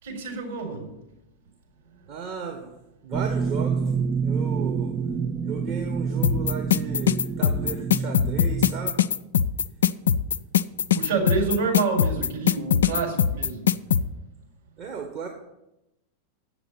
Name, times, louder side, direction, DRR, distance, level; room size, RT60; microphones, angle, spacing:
voice 1, 0.0-0.9 1.9-2.2 10.9-14.0, right 4 dB, 60° right, -1 dB, 4.4 m, -28 dB
voice 2, 2.1-2.7 3.0-4.9 5.4-9.0 14.8-15.3, right 6 dB, 35° right, 1 dB, 1.5 m, -35 dB
sound 1, 3.1-8.9, right 5 dB, 15° right, 0.5 m, -27 dB
sound 2, 6.2-14.0, left 9 dB, 65° left, 0.3 m, -21 dB
8.6 x 7.0 x 8.7 m, 0.91 s
figure-of-eight pair, 90°, 0 cm